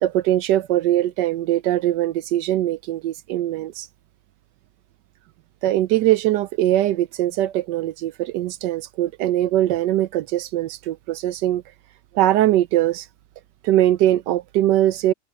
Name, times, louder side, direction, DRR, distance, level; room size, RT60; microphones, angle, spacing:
voice 1, 0.0-3.9 5.6-11.6 12.1-13.1 13.6-15.1, right 13 dB, 85° right, 1.3 m, -21 dB
open air
omnidirectional pair, 1.8 m